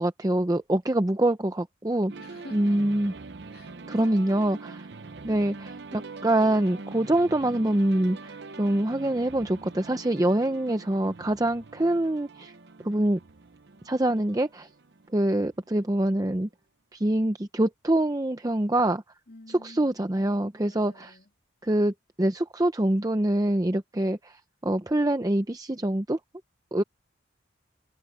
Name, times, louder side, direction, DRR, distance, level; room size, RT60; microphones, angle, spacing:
voice 1, 0.0-2.1 2.5-3.1 3.9-4.8 5.2-12.5 12.8-13.2 13.8-14.7 15.1-16.5 16.9-19.0 19.6-21.2 21.6-26.2 26.7-26.8, right 1 dB, 20° right, 0.6 m, -25 dB
sound 1, 2.1-15.8, right 3 dB, 60° right, 0.7 m, -44 dB
voice 2, 2.2-2.9 3.5-4.7 19.3-20.0 20.7-21.3, left 1 dB, 50° left, 3.2 m, -50 dB
head